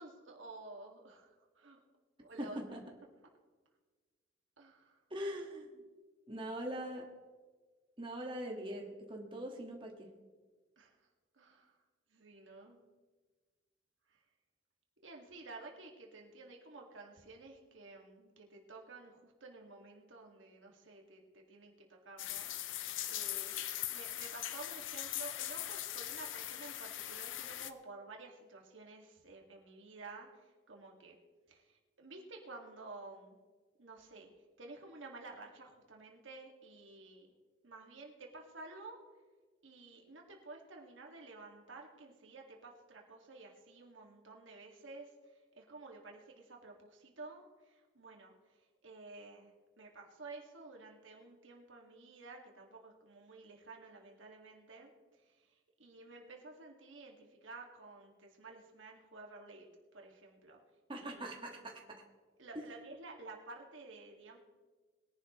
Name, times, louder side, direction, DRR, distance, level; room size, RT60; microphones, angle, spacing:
voice 1, 0.0-1.8 2.2-2.8 4.6-5.0 10.8-11.1 11.3-11.8 12.1-12.8 14.1-14.2 15.0-23.6 23.9-31.2 31.5-33.4 33.8-34.3 34.6-37.3 37.6-39.1 39.6-59.7 59.9-60.6 61.0-61.3 62.4-64.4, right 3 dB, 90° right, 1 dB, 2.1 m, -52 dB
voice 2, 2.4-2.8 5.1-5.8 6.3-7.1 8.0-10.1 60.9-62.0 62.6-62.7, right 1 dB, 25° right, 1 dB, 1.7 m, -42 dB
sound 1, 22.2-27.7, left 13 dB, 85° left, 0.7 m, -40 dB
21.5 x 11.0 x 3.1 m, 1.3 s
head